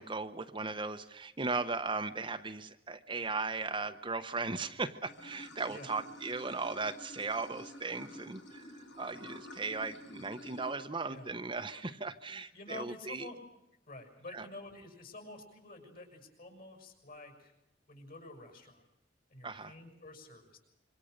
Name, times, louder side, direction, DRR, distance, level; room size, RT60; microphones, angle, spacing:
voice 1, 0.0-13.3 14.3-14.4 19.4-19.7, right 3 dB, 25° right, 8 dB, 0.9 m, -37 dB
Water / Sink (filling or washing), 5.1-10.7, left 1 dB, 90° left, 4.4 m, -50 dB
voice 2, 12.5-13.4 13.9-17.5 17.9-18.8 19.3-20.6, left 2 dB, 50° left, 4 dB, 6.4 m, -49 dB
26.5 x 24.5 x 6.6 m, 0.89 s
head